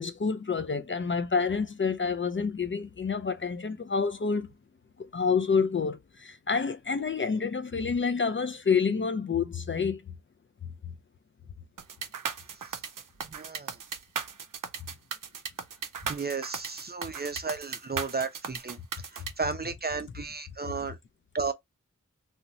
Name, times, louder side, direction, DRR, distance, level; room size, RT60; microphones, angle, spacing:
voice 1, 0.0-4.5 5.0-10.0, left 5 dB, 40° left, 0.4 m, -28 dB
sound 1, 11.8-19.3, right 6 dB, 90° right, 0.5 m, -36 dB
voice 2, 13.2-13.8 16.0-18.8 19.1-21.0 21.3-21.5, right 4 dB, 30° right, 0.4 m, -33 dB
2.9 x 2.2 x 2.5 m
wide cardioid pair, 45°, 31 cm